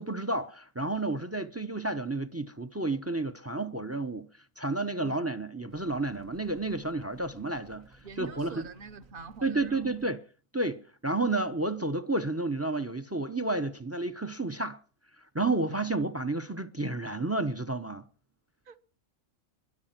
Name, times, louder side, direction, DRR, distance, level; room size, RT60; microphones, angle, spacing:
voice 1, 0.0-4.3 4.6-7.9 8.2-8.6 9.4-10.2 10.5-14.8 15.3-18.0, right 2 dB, 20° right, 0.4 m, -31 dB
sound 1, 5.7-10.1, right 2 dB, 80° right, 2.4 m, -57 dB
voice 2, 8.0-9.9 15.7-15.9 18.7-18.8, right 5 dB, 45° right, 0.9 m, -45 dB
22.5 x 8.7 x 5.8 m
omnidirectional pair, 1.4 m